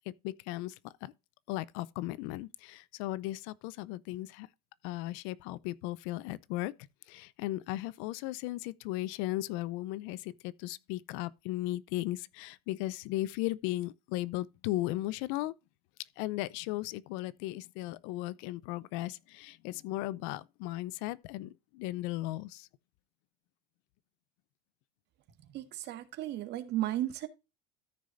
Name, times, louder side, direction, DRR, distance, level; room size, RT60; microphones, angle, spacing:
voice 1, 0.1-1.1 1.5-4.5 4.8-6.7 7.1-15.5 16.2-22.7, left 17 dB, 75° left, 0.6 m, -36 dB
voice 2, 25.5-27.3, right 13 dB, 60° right, 1.7 m, -34 dB
13.5 x 6.4 x 2.5 m
supercardioid pair, 100°, 20 cm